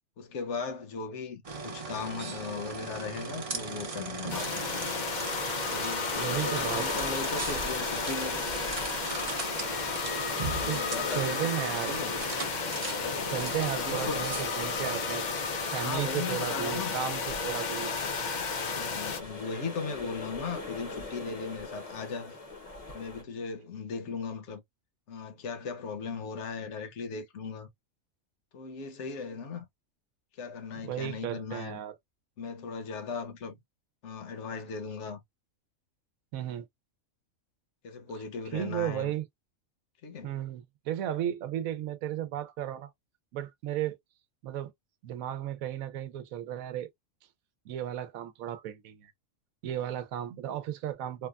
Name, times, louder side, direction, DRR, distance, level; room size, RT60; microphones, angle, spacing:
voice 1, 0.2-4.6 5.6-8.4 10.5-11.5 11.9-12.1 13.0-13.3 13.7-14.3 15.7-17.0 18.6-22.4 22.9-24.6 25.1-27.7 28.5-29.6 30.4-31.8 32.4-33.6 34.0-35.2 37.8-39.1 40.0-40.4, left 5 dB, 60° left, 1.0 m, -38 dB
sound 1, 1.4-15.9, right 4 dB, 40° right, 0.5 m, -39 dB
sound 2, 4.3-19.2, left 4 dB, 80° left, 0.4 m, -33 dB
sound 3, 6.1-23.2, left 3 dB, 35° left, 0.7 m, -41 dB
voice 2, 6.2-7.1 10.7-10.8 11.1-12.0 13.3-15.2 15.7-17.9 30.8-32.0 36.3-36.7 38.5-39.2 40.2-42.9 43.3-44.0 44.4-44.7 45.0-46.9 47.7-49.1 49.6-51.3, right 11 dB, 80° right, 1.0 m, -34 dB
3.2 x 2.2 x 2.3 m
omnidirectional pair, 1.5 m